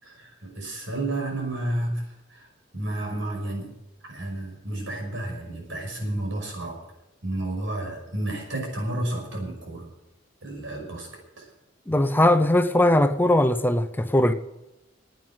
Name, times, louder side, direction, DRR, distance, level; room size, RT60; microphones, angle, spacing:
voice 1, 0.0-3.7 4.0-6.8 7.2-9.9 10.4-11.1 11.4-11.5, right 1 dB, 85° right, 5.8 m, -31 dB
voice 2, 11.9-14.3, left 1 dB, 10° left, 0.6 m, -20 dB
11.0 x 9.3 x 9.4 m
head